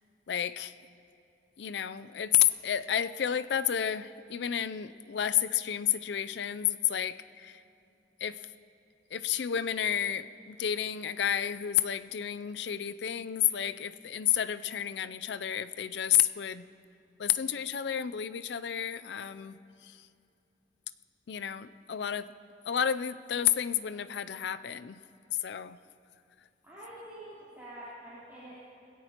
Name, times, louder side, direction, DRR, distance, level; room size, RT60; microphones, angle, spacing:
voice 1, 0.3-0.7 1.6-7.6 8.2-8.5 9.1-16.7 17.2-20.1 21.3-22.3 22.7-25.0 25.3-25.8, left 10 dB, 65° left, 13 dB, 0.4 m, -30 dB
voice 2, 26.6-28.6, right 1 dB, 10° right, -14 dB, 3.5 m, -46 dB
20.5 x 17.0 x 2.9 m, 2.6 s
head